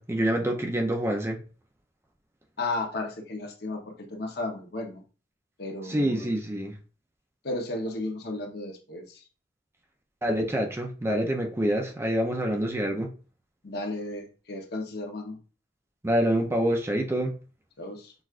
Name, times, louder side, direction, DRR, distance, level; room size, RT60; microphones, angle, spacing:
voice 1, 0.0-1.4 5.9-6.7 10.2-13.1 16.0-17.3, right 1 dB, 15° right, 0.5 m, -26 dB
voice 2, 2.6-5.0 5.6-6.3 7.4-9.2 13.6-15.4 17.8-18.1, left 2 dB, 60° left, 0.9 m, -34 dB
6.0 x 2.3 x 2.4 m
head